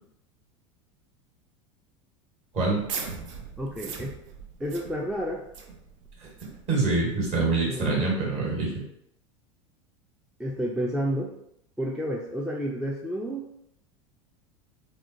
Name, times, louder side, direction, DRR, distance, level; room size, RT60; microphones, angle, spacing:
sound 1, 2.5-7.9, right 5 dB, 70° right, 0.5 m, -41 dB
voice 1, 3.6-4.1 4.6-5.4 7.6-8.0 10.4-11.3 11.8-13.5, equal, 5° right, -2 dB, 0.3 m, -30 dB
voice 2, 6.7-8.7, right 3 dB, 40° right, -3 dB, 1.3 m, -25 dB
2.8 x 2.0 x 2.5 m, 0.77 s
hypercardioid pair, 80°, 17 cm